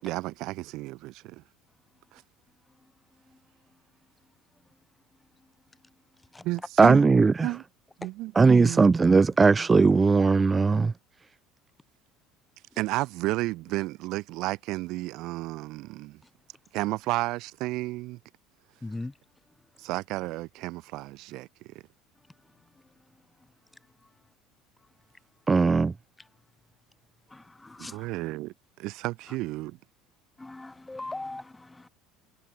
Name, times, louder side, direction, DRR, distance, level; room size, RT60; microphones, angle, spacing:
voice 1, 0.0-1.4 2.1-2.2 6.4-7.0 7.4-7.6 8.0-8.8 9.3-9.4 12.8-16.2 16.7-18.2 19.8-21.7 27.8-29.8, right 19 dB, 60° right, 5.0 m, -32 dB
voice 2, 6.8-7.5 8.4-10.9 25.5-25.9, right 4 dB, 15° right, 0.7 m, -19 dB
voice 3, 18.8-19.1 27.3-28.1 30.4-31.9, left 2 dB, 10° left, 3.4 m, -39 dB
cardioid pair, 150°, 0 cm